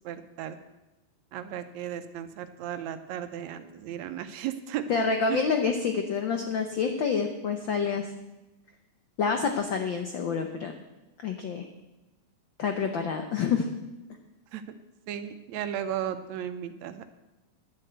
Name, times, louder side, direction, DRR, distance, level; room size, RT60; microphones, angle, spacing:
voice 1, 0.0-0.6 1.3-4.8 5.3-5.4 14.5-14.8 15.1-17.1, right 10 dB, 75° right, 9 dB, 2.0 m, -35 dB
voice 2, 4.9-8.1 9.2-10.7 11.2-11.7 12.6-13.7, left 5 dB, 80° left, 5 dB, 1.0 m, -27 dB
11.0 x 7.6 x 8.0 m, 1.0 s
omnidirectional pair, 3.4 m